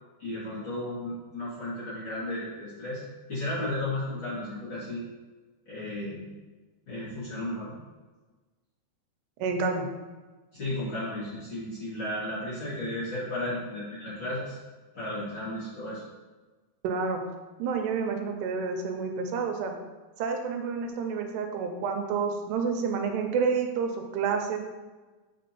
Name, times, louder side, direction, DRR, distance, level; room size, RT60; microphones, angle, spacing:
voice 1, 0.2-3.0 3.3-5.0 5.7-6.2 6.9-7.7 10.5-14.6 14.9-16.0, left 1 dB, 40° left, -11 dB, 1.9 m, -34 dB
voice 2, 9.4-9.9 16.8-17.2 17.6-19.7 20.2-24.6, right 5 dB, 90° right, 4 dB, 2.7 m, -29 dB
7.5 x 5.9 x 2.8 m, 1.3 s
omnidirectional pair, 4.9 m